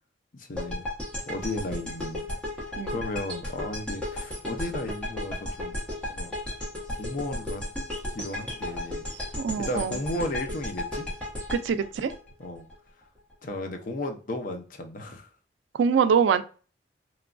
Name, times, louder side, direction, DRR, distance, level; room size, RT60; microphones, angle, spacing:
voice 1, 0.3-0.9 1.3-2.3 2.6-5.8 6.1-6.3 7.0-7.6 8.1-9.1 9.6-11.1 12.4-12.7 13.4-15.3, left 1 dB, 50° left, 5 dB, 0.5 m, -34 dB
sound 1, 0.6-12.7, left 1 dB, 5° left, 0.9 m, -34 dB
voice 2, 9.4-9.9 11.5-12.1 15.7-16.4, right 6 dB, 85° right, 12 dB, 0.3 m, -24 dB
3.0 x 2.2 x 2.4 m, 0.37 s
head